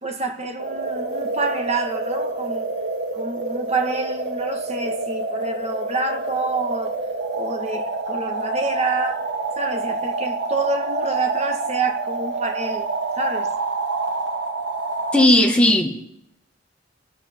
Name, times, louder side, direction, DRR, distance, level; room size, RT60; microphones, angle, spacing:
voice 1, 0.0-2.7 3.1-7.0 7.3-9.3 9.6-12.9 13.2-13.5, right 3 dB, 35° right, 1.8 m, -28 dB
sound 1, 0.6-15.3, right 3 dB, 75° right, 1.8 m, -27 dB
voice 2, 15.1-16.0, left 1 dB, 5° left, 2.0 m, -16 dB
27.5 x 13.5 x 3.8 m
head